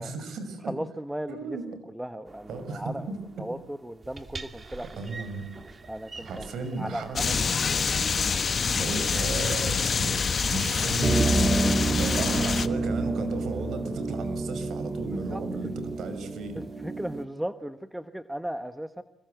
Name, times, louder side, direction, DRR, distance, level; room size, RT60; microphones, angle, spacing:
voice 1, 0.0-0.7 1.3-1.7 2.5-3.2 5.0-5.5 6.2-7.4 8.7-10.1 10.5-16.6, right 3 dB, 65° right, 10 dB, 5.8 m, -35 dB
voice 2, 0.7-1.6 1.9-3.1 3.4-4.9 5.9-7.5 15.1-15.7 16.5-19.0, right 1 dB, 5° right, 10 dB, 1.2 m, -36 dB
sound 1, 4.0-6.6 7.6-7.7 8.3-8.4 9.1-9.5 10.4-10.5 10.8-17.2, right 2 dB, 30° right, 2.5 m, -30 dB
sound 2, 7.2-12.7, left 5 dB, 40° left, 1.2 m, -26 dB
26.5 x 23.0 x 7.9 m, 0.78 s
cardioid pair, 90°, 0 cm